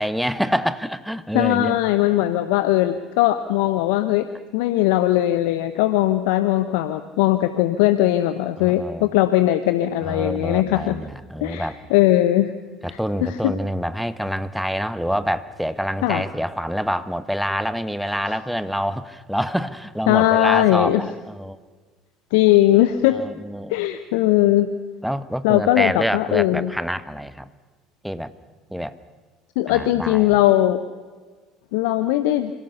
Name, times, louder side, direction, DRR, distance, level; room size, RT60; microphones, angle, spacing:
voice 1, 0.0-1.8 8.6-9.1 10.0-11.8 12.8-21.6 23.1-23.8 25.0-27.5 28.0-28.3 28.7-29.0 29.7-30.4, equal, ahead, 13 dB, 1.2 m, -26 dB
voice 2, 1.3-10.9 11.4-12.5 12.9-13.5 16.0-16.2 18.3-18.4 20.1-21.0 22.3-23.2 23.7-24.7 25.4-26.7 29.6-30.8 31.7-32.5, left 14 dB, 70° left, 11 dB, 0.9 m, -19 dB
25.5 x 17.0 x 6.9 m, 1.4 s
hypercardioid pair, 65°, 0 cm